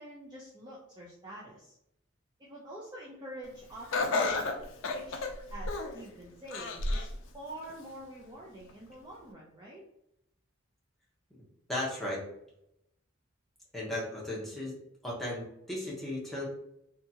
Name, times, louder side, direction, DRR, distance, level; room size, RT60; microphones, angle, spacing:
voice 1, 0.0-1.8 2.4-5.2 5.5-9.8, right 1 dB, 20° right, -4 dB, 0.4 m, -47 dB
Laughter, 3.9-6.0 6.5-7.1 7.6-7.7 8.7-8.8, left 3 dB, 65° left, 0.4 m, -31 dB
voice 2, 11.7-12.2 13.7-14.7 15.0-16.5, left 1 dB, ahead, -5 dB, 0.7 m, -35 dB
2.7 x 2.3 x 2.7 m, 0.79 s
head